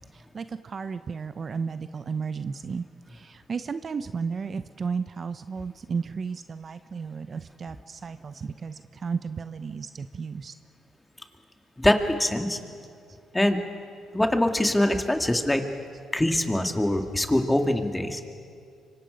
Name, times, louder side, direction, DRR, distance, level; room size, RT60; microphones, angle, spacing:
voice 1, 0.1-10.5, right 5 dB, 45° right, 11 dB, 0.7 m, -33 dB
voice 2, 11.8-12.6 13.3-13.6 14.1-15.6 16.1-18.2, left 1 dB, 10° left, 5 dB, 2.1 m, -23 dB
25.5 x 24.5 x 5.2 m, 2.3 s
cardioid pair, 75°, 0 cm